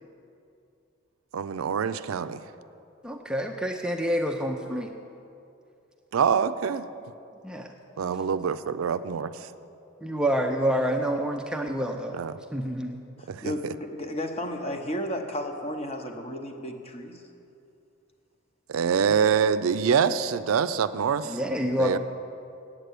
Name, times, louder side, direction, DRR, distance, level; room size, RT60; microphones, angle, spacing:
voice 1, 1.3-2.4 6.1-6.9 8.0-9.5 12.1-12.4 13.3-13.7 18.7-21.4 21.8-22.0, right 7 dB, 80° right, 12 dB, 0.4 m, -25 dB
voice 2, 3.0-4.9 7.4-7.7 10.0-12.2 12.5-13.0 21.3-22.0, equal, 5° right, 2 dB, 0.4 m, -27 dB
voice 3, 13.2-17.2, equal, 30° left, 4 dB, 0.9 m, -33 dB
8.8 x 7.9 x 8.3 m, 2.6 s
head